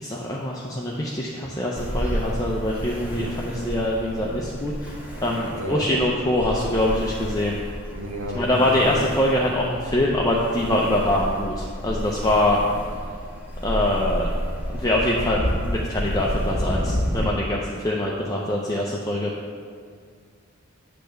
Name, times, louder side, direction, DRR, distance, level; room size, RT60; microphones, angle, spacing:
voice 1, 0.0-4.9 5.2-7.6 8.3-12.6 13.6-14.3 14.7-19.3, left 1 dB, 15° left, -3 dB, 0.5 m, -24 dB
Ocean, 1.8-17.2, equal, 10° right, 1.6 m, -30 dB
voice 2, 5.5-5.9 7.9-9.0, right 1 dB, 75° right, -2 dB, 1.6 m, -31 dB
8.2 x 3.4 x 6.5 m, 2.1 s
head